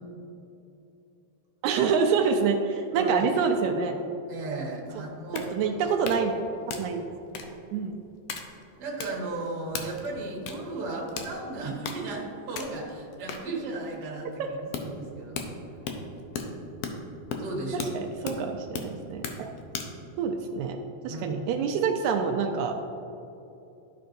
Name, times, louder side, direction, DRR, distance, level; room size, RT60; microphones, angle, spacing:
voice 1, 1.6-4.0 5.3-6.4 6.8-7.0 7.4-8.0 14.4-14.5 17.9-19.5 20.2-20.8 21.0-22.8, right 5 dB, 80° right, 3 dB, 1.9 m, -26 dB
voice 2, 4.3-5.7 8.8-15.4 17.4-17.9 21.1-21.6, right 2 dB, 45° right, -3 dB, 1.6 m, -35 dB
sound 1, 4.9-20.0, left 5 dB, 75° left, 1.5 m, -38 dB
12.5 x 5.5 x 2.6 m, 2.8 s
omnidirectional pair, 3.4 m